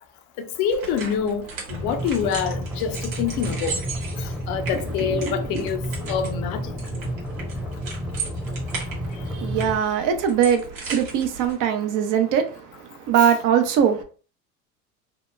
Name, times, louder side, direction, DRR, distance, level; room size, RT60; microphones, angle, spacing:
voice 1, 0.4-1.4 1.7-3.8 4.5-5.8 6.1-6.6 13.2-13.3, left 7 dB, 60° left, 0.6 m, -26 dB
sound 1, 0.7-11.5, right 4 dB, 85° right, 1.1 m, -37 dB
sound 2, 1.7-9.8, equal, 5° right, 0.7 m, -31 dB
voice 2, 5.0-5.7 9.3-14.0, right 8 dB, 50° right, 0.6 m, -22 dB
2.8 x 2.0 x 2.3 m
hypercardioid pair, 85°, 40 cm